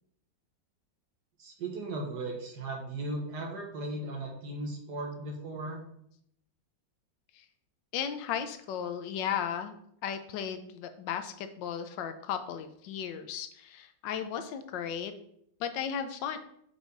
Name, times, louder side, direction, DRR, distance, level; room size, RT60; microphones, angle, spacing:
voice 1, 1.4-5.8, right 2 dB, 65° right, 1 dB, 1.8 m, -37 dB
voice 2, 7.9-9.7 10.0-15.1 15.6-16.4, left 8 dB, 85° left, 9 dB, 1.3 m, -35 dB
5.3 x 4.9 x 4.0 m, 0.71 s
omnidirectional pair, 1.9 m